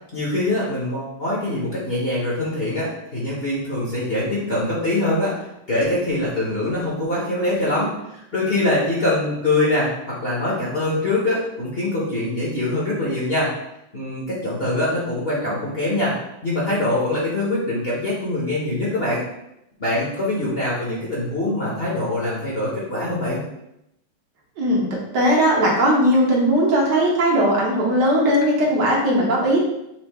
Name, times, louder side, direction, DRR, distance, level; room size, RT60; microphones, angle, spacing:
voice 1, 0.1-13.5 13.9-16.1 16.4-19.2 19.8-23.4, left 1 dB, 40° left, -7 dB, 1.1 m, -23 dB
voice 2, 24.6-24.9 25.1-29.6, equal, 65° right, -3 dB, 1.4 m, -18 dB
5.7 x 2.4 x 3.5 m, 0.82 s
omnidirectional pair, 2.1 m